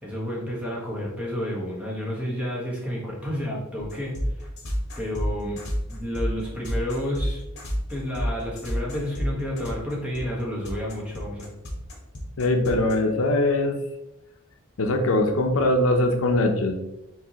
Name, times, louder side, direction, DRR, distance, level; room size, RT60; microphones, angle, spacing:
voice 1, 0.0-4.1 5.0-7.4 7.9-11.5, equal, 5° right, -4 dB, 1.1 m, -30 dB
sound 1, 3.8-12.9, equal, 50° left, 1.1 m, -30 dB
voice 2, 12.4-13.8 14.8-16.7, left 2 dB, 75° left, 5 dB, 0.6 m, -21 dB
4.5 x 4.0 x 2.9 m, 0.88 s
head